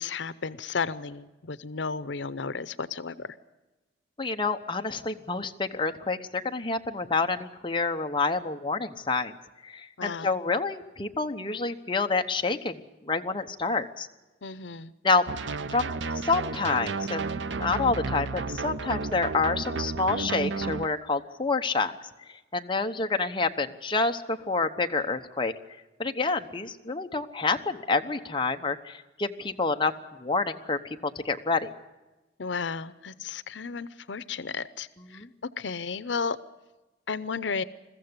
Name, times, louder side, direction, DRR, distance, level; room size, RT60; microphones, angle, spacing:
voice 1, 0.0-3.3 10.0-10.3 14.4-14.9 32.4-35.2 35.6-36.4 37.1-37.6, left 5 dB, 90° left, 16 dB, 0.7 m, -33 dB
voice 2, 4.2-9.3 9.6-14.1 15.0-15.2 15.7-21.9 22.3-25.5 26.0-29.9 30.2-31.7 35.0-35.3, left 3 dB, 25° left, 5 dB, 1.0 m, -28 dB
sound 1, 15.3-20.9, right 4 dB, 85° right, 0.7 m, -32 dB
22.0 x 14.5 x 9.7 m, 1.1 s
head